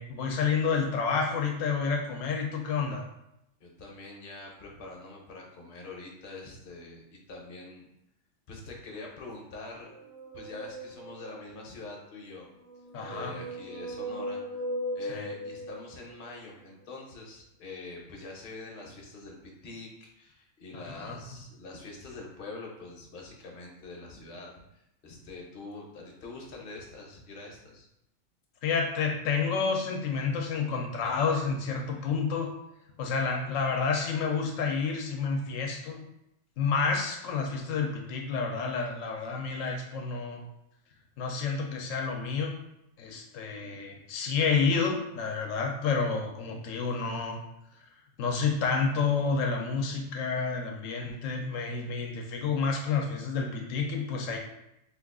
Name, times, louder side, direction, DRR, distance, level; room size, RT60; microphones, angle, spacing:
voice 1, 0.0-3.0 12.9-13.3 15.1-15.3 20.7-21.2 28.6-32.5 33.0-36.0 36.6-40.4 41.2-42.5 43.0-47.4 48.2-54.4, left 5 dB, 90° left, 1 dB, 1.0 m, -29 dB
voice 2, 3.6-7.0 7.3-7.8 8.5-9.9 10.3-12.5 13.1-14.6 14.9-19.3 19.6-27.9, left 3 dB, 50° left, -1 dB, 0.7 m, -44 dB
sound 1, 9.9-11.5 12.4-16.3, equal, 80° right, 1.2 m, -38 dB
2.9 x 2.3 x 3.5 m, 0.83 s
omnidirectional pair, 1.3 m